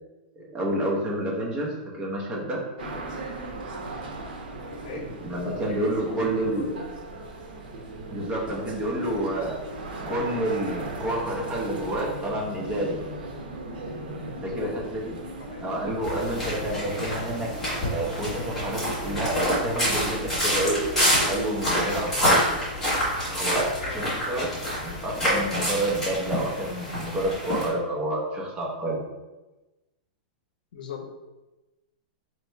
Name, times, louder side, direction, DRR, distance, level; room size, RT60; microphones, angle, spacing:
voice 1, 0.4-2.6 4.9-6.7 8.1-9.6 10.1-13.0 14.4-15.2 15.6-17.5 17.8-20.8 21.3-22.4 23.3-24.5 24.8-29.0, right 1 dB, 15° right, -3 dB, 0.7 m, -29 dB
sound 1, 2.8-21.4, right 2 dB, 80° right, 0.9 m, -37 dB
voice 2, 4.4-5.0 5.5-5.8 6.1-6.9 14.6-14.7 15.3-15.6 16.6-16.9 22.0-22.2 23.7-24.0 30.7-31.1, left 7 dB, 65° left, 4 dB, 0.7 m, -41 dB
sound 2, 16.0-27.7, equal, 5° left, 1.5 m, -27 dB
3.1 x 2.9 x 4.4 m, 1.1 s
supercardioid pair, 175°, 5 cm